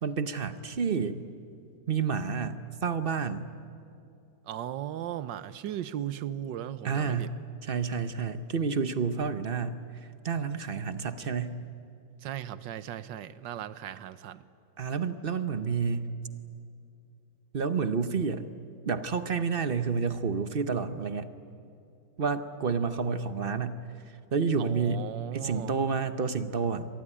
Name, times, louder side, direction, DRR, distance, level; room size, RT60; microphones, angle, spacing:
voice 1, 0.0-1.2 1.9-3.5 6.8-7.3 7.6-9.8 10.2-11.6 14.8-16.1 17.5-18.5 18.9-21.3 22.2-23.9 24.3-25.1 25.3-26.9, right 5 dB, 40° right, 11 dB, 0.8 m, -29 dB
voice 2, 4.4-7.3 12.2-14.4 24.6-25.7, right 11 dB, 85° right, 15 dB, 1.5 m, -37 dB
26.0 x 20.0 x 10.0 m, 2.6 s
omnidirectional pair, 1.9 m